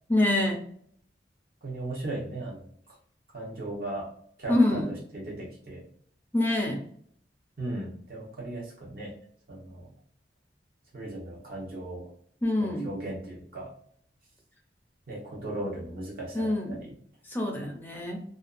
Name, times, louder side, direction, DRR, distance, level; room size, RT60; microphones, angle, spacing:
voice 1, 0.1-0.6 4.5-4.9 6.3-6.8 12.4-12.9 16.3-16.8 17.3-18.2, left 1 dB, 10° left, 0 dB, 0.5 m, -25 dB
voice 2, 1.6-2.7 3.3-4.1 4.4-4.8 5.1-5.8 7.6-9.1 9.5-9.9 10.9-12.1 12.6-13.7 15.1-16.9, right 1 dB, 50° right, -3 dB, 0.8 m, -37 dB
2.5 x 2.3 x 2.4 m, 0.63 s
head